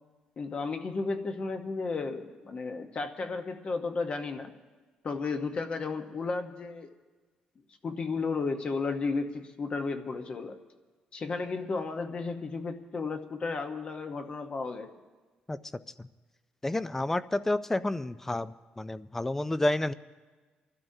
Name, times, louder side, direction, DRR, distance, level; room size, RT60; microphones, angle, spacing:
voice 1, 0.4-4.5 5.0-6.9 7.8-10.6 11.1-14.9, left 4 dB, 40° left, 6 dB, 0.9 m, -33 dB
voice 2, 16.6-19.9, left 1 dB, 15° left, 15 dB, 0.4 m, -30 dB
30.0 x 12.0 x 2.7 m, 1.3 s
cardioid pair, 115°, 3 cm